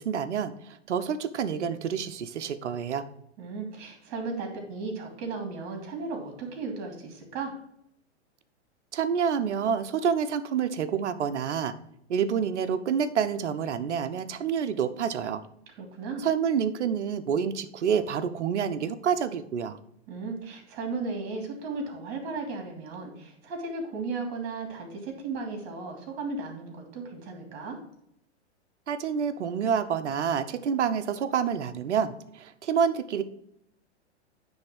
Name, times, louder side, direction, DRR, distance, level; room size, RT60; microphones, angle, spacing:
voice 1, 0.0-3.0 8.9-11.7 12.1-15.4 16.2-19.8 28.9-33.2, right 7 dB, 75° right, 12 dB, 0.9 m, -28 dB
voice 2, 3.4-7.5 15.8-16.3 20.1-27.8, right 3 dB, 40° right, 2 dB, 3.1 m, -35 dB
9.7 x 3.6 x 6.1 m, 0.75 s
hypercardioid pair, 110°, 35 cm